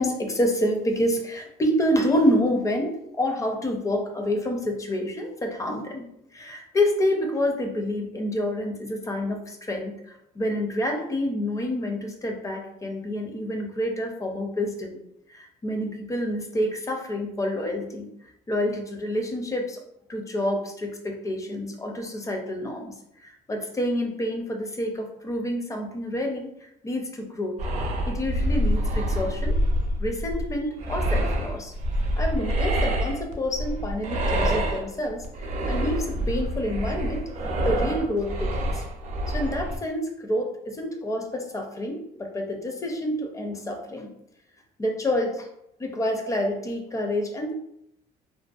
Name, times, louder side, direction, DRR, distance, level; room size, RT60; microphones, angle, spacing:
voice 1, 0.0-6.1 6.3-9.9 10.4-15.0 15.3-18.1 18.5-19.8 20.1-22.9 23.2-26.5 26.8-27.6 28.1-29.6 30.0-31.7 32.2-35.2 35.7-37.3 37.6-38.8 39.3-44.1 44.8-45.5 45.8-47.5, left 1 dB, 20° left, 3 dB, 0.4 m, -28 dB
sound 1, 27.6-39.8, equal, 45° right, 0.5 m, -26 dB
2.5 x 2.1 x 2.3 m, 0.80 s
cardioid pair, 110°, 17 cm